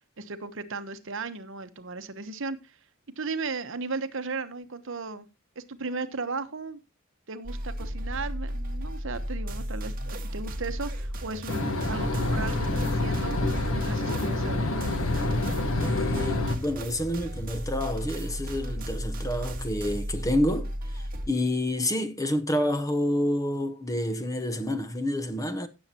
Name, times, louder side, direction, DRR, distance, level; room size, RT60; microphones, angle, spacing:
voice 1, 0.2-2.8 3.2-5.3 5.6-6.8 7.3-13.4 13.7-14.7, right 3 dB, 60° right, 1.0 m, -36 dB
sound 1, 7.4-21.3, equal, 40° right, 1.7 m, -34 dB
sound 2, 11.5-16.6, left 2 dB, 70° left, 1.5 m, -27 dB
voice 2, 15.8-25.7, left 1 dB, 15° left, 0.9 m, -29 dB
17.0 x 7.1 x 2.9 m
head